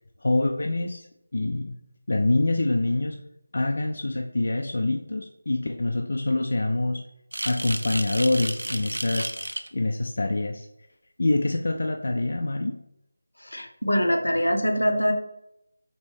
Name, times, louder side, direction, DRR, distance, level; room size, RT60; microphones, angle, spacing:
voice 1, 0.2-1.1 1.3-1.8 2.1-3.2 3.5-7.0 7.4-9.3 9.7-10.7 11.2-12.8, left 2 dB, 60° left, 2 dB, 0.3 m, -25 dB
sound 1, 7.3-9.7, right 1 dB, 85° right, 0.3 m, -32 dB
voice 2, 13.4-15.1, equal, 90° left, 4 dB, 0.7 m, -23 dB
4.2 x 2.9 x 3.1 m, 0.81 s
figure-of-eight pair, 165°, 0 cm